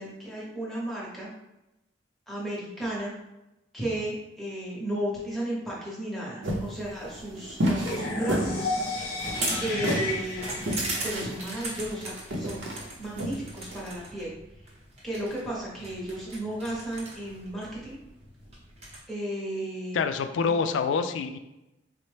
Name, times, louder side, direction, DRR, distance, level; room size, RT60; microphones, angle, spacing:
voice 1, 0.0-1.3 2.3-3.1 3.7-8.8 9.6-10.5 11.0-12.7 13.0-14.3 15.0-18.0 19.1-20.0 20.5-20.6, right 1 dB, ahead, -6 dB, 0.9 m, -34 dB
sound 1, 6.4-13.9, equal, 85° right, 0.7 m, -31 dB
sound 2, 7.8-11.8, left 2 dB, 50° left, 0.7 m, -33 dB
sound 3, 8.8-19.0, right 2 dB, 35° right, 0.8 m, -39 dB
voice 2, 19.9-21.4, left 5 dB, 90° left, 9 dB, 0.3 m, -26 dB
4.1 x 2.1 x 3.2 m, 0.95 s
head